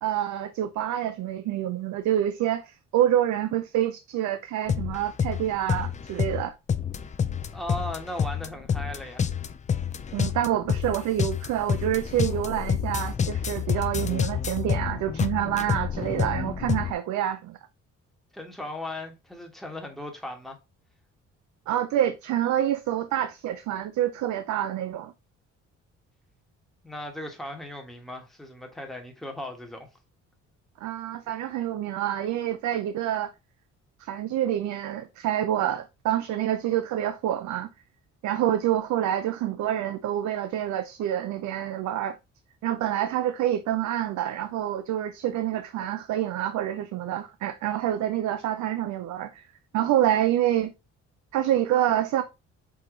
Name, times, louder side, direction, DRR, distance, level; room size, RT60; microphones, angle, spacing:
voice 1, 0.0-6.5 10.1-17.6 21.7-25.1 30.8-33.3 34.0-37.7 38.2-42.2 42.6-49.4 49.7-50.7 51.3-52.2, right 11 dB, 70° right, 0.5 m, -27 dB
sound 1, 4.7-16.9, left 7 dB, 25° left, 0.4 m, -28 dB
voice 2, 7.5-9.4 18.3-20.6 26.8-29.9, left 1 dB, ahead, 1.3 m, -37 dB
4.8 x 3.0 x 3.7 m
cardioid pair, 90°, 30 cm